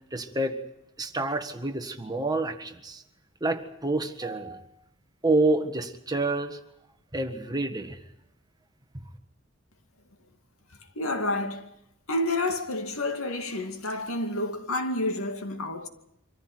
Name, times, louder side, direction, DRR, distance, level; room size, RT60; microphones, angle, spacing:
voice 1, 0.1-0.5 1.0-3.0 3.4-4.6 5.2-6.6 7.1-8.0, right 2 dB, 20° right, 1.6 m, -28 dB
voice 2, 11.0-11.7 12.1-15.9, left 2 dB, 80° left, 2.4 m, -29 dB
25.0 x 15.0 x 9.6 m
head